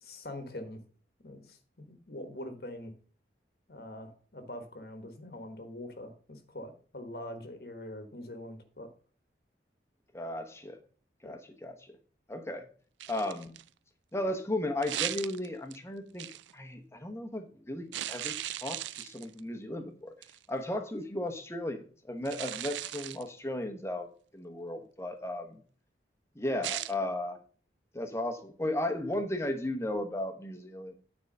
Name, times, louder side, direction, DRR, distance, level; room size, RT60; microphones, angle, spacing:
voice 1, 0.0-0.8 1.2-2.9 3.7-8.9 11.2-11.4, left 1 dB, 60° left, 7 dB, 1.3 m, -43 dB
voice 2, 10.1-10.8 11.2-12.0 12.3-12.6 13.1-13.6 14.1-16.3 16.5-18.4 18.6-20.1 20.5-24.1 24.3-25.6 26.4-27.4 27.9-30.9, left 1 dB, 15° left, 6 dB, 1.0 m, -35 dB
sound 1, 13.0-13.7 14.8-15.8 16.2-16.5 17.9-19.4 20.2-20.4 22.2-23.3 26.6-26.9, right 13 dB, 90° right, 0.4 m, -37 dB
9.1 x 4.7 x 5.3 m, 0.42 s
head